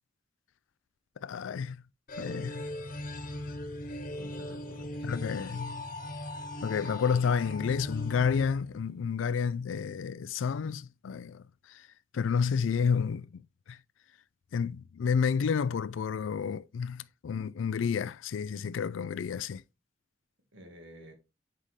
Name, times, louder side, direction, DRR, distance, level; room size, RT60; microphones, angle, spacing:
voice 1, 1.2-1.8 2.2-2.6 5.1-5.8 6.6-11.4 11.7-11.8 12.1-13.4 13.7-13.8 14.5-19.6, left 6 dB, 80° left, 0.4 m, -30 dB
sound 1, 2.1-9.1, left 1 dB, 45° left, 1.2 m, -39 dB
voice 2, 4.1-5.3 20.5-21.1, equal, 70° right, 1.8 m, -51 dB
7.6 x 5.1 x 3.1 m
head